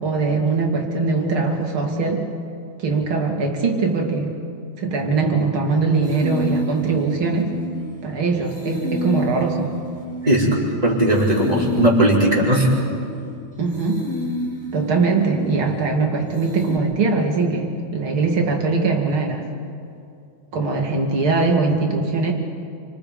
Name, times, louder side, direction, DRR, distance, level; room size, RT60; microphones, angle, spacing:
voice 1, 0.0-2.3 2.8-4.4 4.8-7.6 8.0-9.7 13.6-14.1 14.7-19.4 20.5-22.3, right 4 dB, 80° right, 1 dB, 3.5 m, -21 dB
sound 1, 6.0-8.1 8.4-10.7 11.1-13.3 13.7-15.9 16.3-16.8, left 1 dB, 5° left, 4.8 m, -30 dB
voice 2, 10.2-12.7, right 1 dB, 15° right, -5 dB, 4.5 m, -18 dB
29.5 x 25.5 x 5.2 m, 2.4 s
omnidirectional pair, 2.3 m